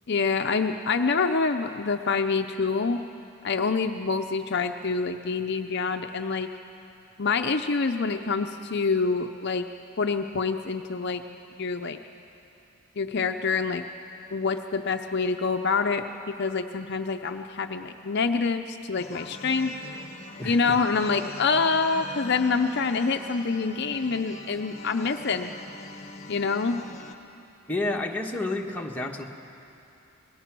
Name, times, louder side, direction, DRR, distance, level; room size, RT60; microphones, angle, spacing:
voice 1, 0.1-3.0 3.4-6.5 7.2-9.7 10.0-11.2 11.6-12.0 13.0-13.8 14.3-19.7 20.5-25.5 26.3-26.8, left 4 dB, 50° left, 6 dB, 0.6 m, -26 dB
sound 1, 19.0-27.1, left 3 dB, 30° left, 1.0 m, -42 dB
voice 2, 20.4-20.7 27.7-29.2, left 2 dB, 10° left, -1 dB, 1.4 m, -30 dB
28.5 x 20.0 x 6.1 m, 2.8 s
head